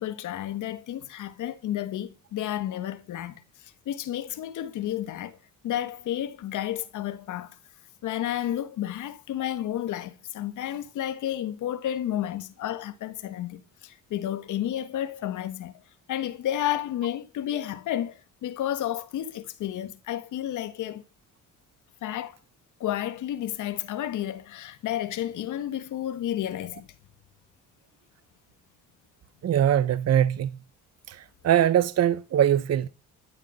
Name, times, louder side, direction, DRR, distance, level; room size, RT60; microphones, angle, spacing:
voice 1, 0.0-3.4 3.8-5.3 5.6-7.5 8.0-15.7 16.1-21.0 22.0-22.4 22.8-26.9, left 12 dB, 80° left, 1.7 m, -31 dB
voice 2, 29.4-30.5 31.1-31.2 31.4-32.9, right 10 dB, 55° right, 1.0 m, -22 dB
15.5 x 12.0 x 5.7 m
cardioid pair, 90°, 30 cm